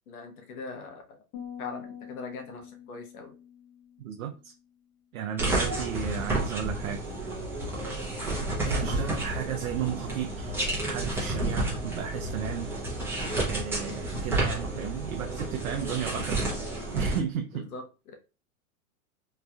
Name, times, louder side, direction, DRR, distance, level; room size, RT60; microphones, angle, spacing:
voice 1, 0.1-1.2 1.6-3.3 5.5-5.7 13.8-14.0 17.5-18.2, left 4 dB, 75° left, 1.0 m, -42 dB
sound 1, 1.3-4.7, left 8 dB, 40° left, 1.0 m, -45 dB
voice 2, 4.0-4.5 5.1-7.0 7.8-8.1 8.6-12.7 13.4-16.4 16.9-17.6, right 9 dB, 70° right, 0.6 m, -34 dB
sound 2, 5.4-17.2, right 2 dB, 5° right, 0.8 m, -31 dB
3.1 x 2.6 x 2.3 m
hypercardioid pair, 130°, 43 cm